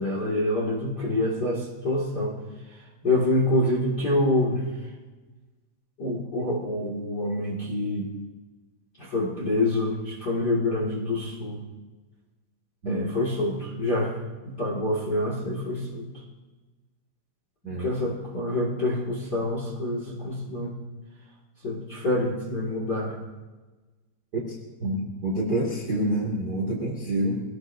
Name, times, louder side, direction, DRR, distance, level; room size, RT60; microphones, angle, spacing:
voice 1, 0.0-2.4 3.0-4.6 6.0-8.1 9.0-11.6 12.9-14.2 14.4-16.1 17.7-20.7 21.6-23.2, left 1 dB, 35° left, -4 dB, 1.9 m, -26 dB
voice 2, 17.6-18.0 24.3-27.3, right 1 dB, 35° right, -2 dB, 1.8 m, -28 dB
24.0 x 18.0 x 2.7 m, 1.2 s
omnidirectional pair, 5.1 m